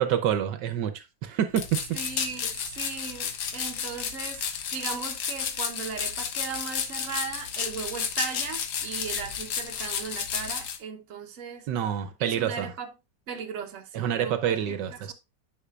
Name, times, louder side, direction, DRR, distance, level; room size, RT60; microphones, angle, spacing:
voice 1, 0.0-2.0 11.7-12.7 13.9-15.1, right 9 dB, 75° right, 1.4 m, -27 dB
sound 1, 1.5-10.8, left 7 dB, 65° left, 1.4 m, -32 dB
voice 2, 1.9-11.7 12.2-12.9 13.3-15.1, right 6 dB, 50° right, 1.2 m, -37 dB
9.8 x 5.8 x 2.4 m
omnidirectional pair, 1.9 m